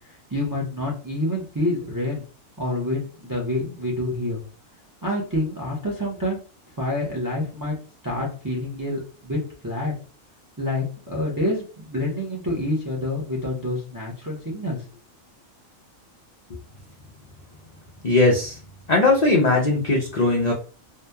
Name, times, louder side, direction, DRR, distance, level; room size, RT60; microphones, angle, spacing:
voice 1, 0.1-2.2 2.6-4.4 5.0-6.4 6.8-7.8 8.0-9.9 10.6-14.8, left 1 dB, 35° right, -3 dB, 0.3 m, -27 dB
voice 2, 18.0-18.6 18.9-20.5, left 2 dB, 70° left, -2 dB, 0.4 m, -19 dB
2.7 x 2.1 x 2.2 m, 0.36 s
omnidirectional pair, 1.4 m